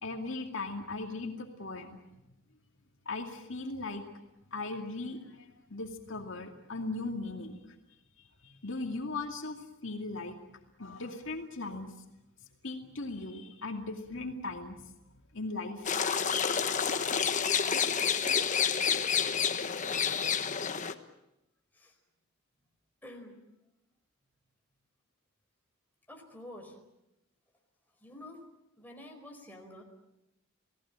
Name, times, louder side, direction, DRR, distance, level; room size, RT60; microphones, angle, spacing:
voice 1, 0.0-2.0 3.1-4.1 4.5-7.6 8.4-10.4 10.8-11.9 12.6-14.8 15.3-16.0, left 3 dB, 65° left, 3 dB, 2.4 m, -38 dB
sound 1, 15.9-20.9, left 7 dB, 35° left, 1.2 m, -29 dB
voice 2, 23.0-23.4 26.1-26.7 28.0-28.4 28.8-29.8, left 1 dB, 10° left, 1 dB, 4.6 m, -48 dB
29.0 x 18.5 x 9.0 m, 0.90 s
head